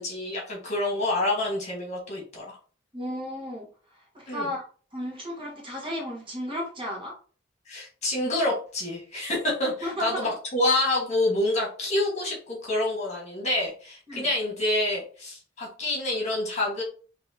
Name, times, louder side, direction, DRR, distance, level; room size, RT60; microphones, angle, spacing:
voice 1, 0.0-2.6 4.3-4.5 7.7-16.8, left 1 dB, 40° left, -2 dB, 1.7 m, -27 dB
voice 2, 2.9-4.6 4.9-7.1 9.8-10.3 14.1-14.3, equal, 30° right, -3 dB, 1.4 m, -34 dB
4.7 x 2.8 x 2.9 m, 0.39 s
head